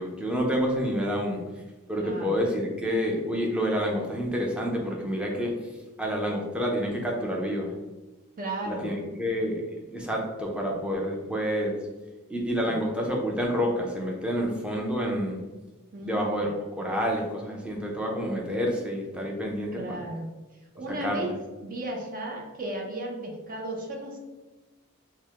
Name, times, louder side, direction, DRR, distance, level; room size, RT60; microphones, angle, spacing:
voice 1, 0.0-1.4 1.9-5.7 6.0-7.8 8.7-9.6 9.9-11.8 12.3-15.4 16.0-20.0 21.0-21.3, equal, 5° right, -1 dB, 0.6 m, -28 dB
voice 2, 2.0-2.4 8.4-8.9 12.6-12.8 15.9-16.5 19.7-20.3 20.7-21.4 21.6-24.2, right 1 dB, 40° right, 1 dB, 0.7 m, -35 dB
4.7 x 2.1 x 3.6 m, 1.2 s
head